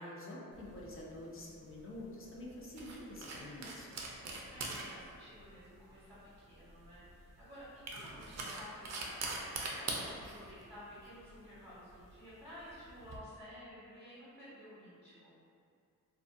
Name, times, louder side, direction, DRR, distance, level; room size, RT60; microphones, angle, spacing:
voice 1, 0.0-4.0, left 1 dB, 40° left, -4 dB, 0.5 m, -47 dB
sound 1, 0.5-13.2, right 2 dB, 50° right, 0.4 m, -44 dB
voice 2, 4.5-15.3, equal, ahead, -14 dB, 1.2 m, -53 dB
2.3 x 2.3 x 2.5 m, 2.4 s
cardioid pair, 65°, 34 cm